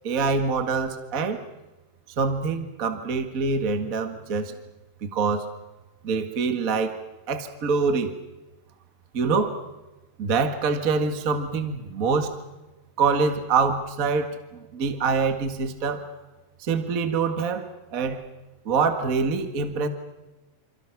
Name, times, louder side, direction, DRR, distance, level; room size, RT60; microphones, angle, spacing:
voice 1, 0.0-1.4 2.2-4.5 5.0-5.5 6.0-7.0 7.3-8.2 9.1-9.6 10.2-12.4 13.0-16.0 16.6-18.2 18.6-19.9, right 4 dB, 90° right, 7 dB, 0.7 m, -25 dB
27.5 x 27.5 x 5.9 m, 1.1 s
omnidirectional pair, 4.8 m